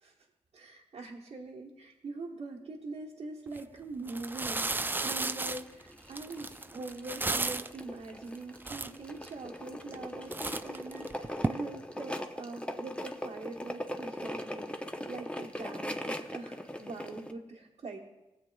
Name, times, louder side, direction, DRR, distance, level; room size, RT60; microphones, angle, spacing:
voice 1, 0.5-18.0, right 3 dB, 65° right, -4 dB, 1.1 m, -43 dB
sound 1, 3.5-3.6 4.1-7.8 8.4-8.5 8.6-9.3 9.8-10.1 10.3-11.5, right 2 dB, 15° right, 0.4 m, -34 dB
sound 2, 5.4-17.3, left 1 dB, 10° left, 0.8 m, -40 dB
19.5 x 7.6 x 2.3 m, 1.0 s
cardioid pair, 60°, 12 cm